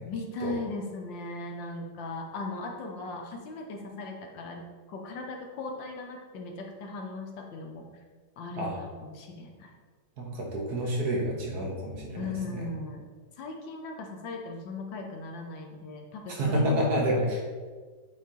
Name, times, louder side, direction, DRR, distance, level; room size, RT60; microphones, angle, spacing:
voice 1, 0.0-7.9 8.4-9.7 12.2-13.0 13.4-16.9, left 3 dB, 70° left, 2 dB, 1.5 m, -38 dB
voice 2, 10.2-12.7 16.3-17.4, equal, 55° right, -1 dB, 1.5 m, -29 dB
8.4 x 4.4 x 3.7 m, 1.5 s
omnidirectional pair, 2.2 m